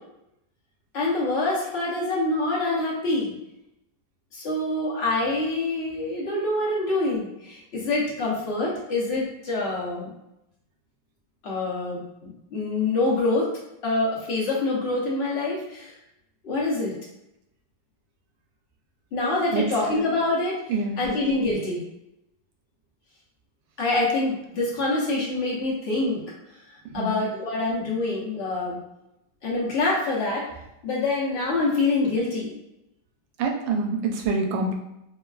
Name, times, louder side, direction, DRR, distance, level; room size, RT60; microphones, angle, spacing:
voice 1, 0.9-3.3 4.3-10.1 11.4-13.5 13.8-15.9 16.4-16.9 19.1-20.6 21.0-21.8 23.8-26.2 26.9-28.8 29.4-30.5 30.8-32.5, left 2 dB, 60° left, -5 dB, 0.7 m, -25 dB
voice 2, 20.7-21.0 26.9-27.1 33.4-34.7, right 3 dB, 90° right, 2 dB, 1.3 m, -25 dB
3.3 x 2.3 x 2.3 m, 0.87 s
omnidirectional pair, 2.0 m